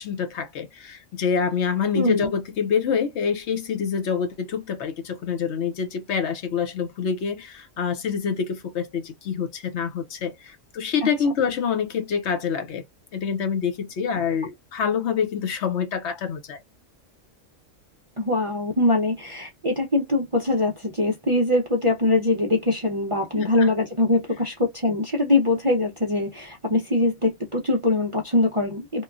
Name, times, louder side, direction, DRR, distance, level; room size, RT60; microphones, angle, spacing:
voice 1, 0.0-12.8 13.1-16.6 23.4-23.7, left 6 dB, 65° left, 0.9 m, -26 dB
voice 2, 1.9-2.3 18.2-29.0, left 2 dB, 40° right, 0.5 m, -22 dB
3.0 x 2.1 x 2.3 m
omnidirectional pair, 1.4 m